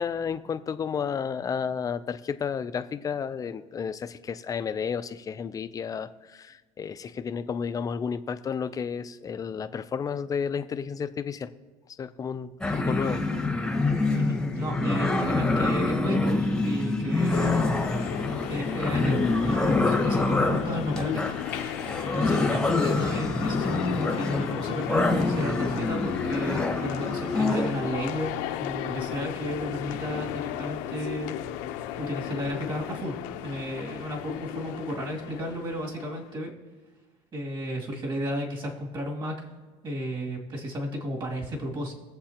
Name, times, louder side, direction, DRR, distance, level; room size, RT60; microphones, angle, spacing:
voice 1, 0.0-11.5 12.0-13.2, left 6 dB, 25° left, 11 dB, 0.5 m, -32 dB
sound 1, 12.6-28.0, left 2 dB, 5° left, 1.0 m, -26 dB
voice 2, 14.1-17.7 18.5-21.6 22.0-28.3 28.6-31.4 32.0-33.1 33.4-36.5 37.3-39.3 39.8-41.9, equal, 35° right, -1 dB, 2.5 m, -33 dB
sound 2, 17.3-36.3, left 12 dB, 80° left, 0.8 m, -35 dB
21.5 x 7.5 x 2.9 m, 1.3 s
cardioid pair, 130°, 14 cm